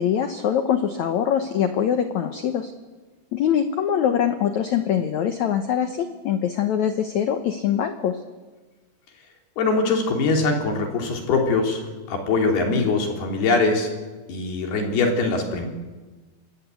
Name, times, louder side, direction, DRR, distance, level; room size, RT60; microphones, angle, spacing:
voice 1, 0.0-2.7 3.3-8.2, left 9 dB, 90° left, 8 dB, 1.6 m, -23 dB
voice 2, 9.6-13.9 14.3-15.7, left 3 dB, 65° left, 2 dB, 5.1 m, -22 dB
26.5 x 20.5 x 8.4 m, 1.3 s
omnidirectional pair, 4.9 m